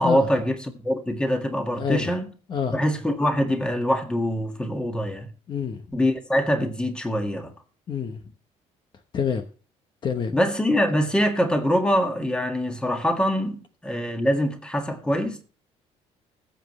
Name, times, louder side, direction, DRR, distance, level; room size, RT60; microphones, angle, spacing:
voice 1, 0.0-2.3 2.7-5.3 5.9-7.5 10.3-15.4, equal, 10° left, 1.8 m, -24 dB
voice 2, 1.8-2.1 2.5-2.8 5.5-5.8 7.9-8.2 9.1-9.5 10.0-10.4, left 7 dB, 40° left, 1.0 m, -27 dB
20.0 x 7.7 x 3.1 m
cardioid pair, 155°, 12 cm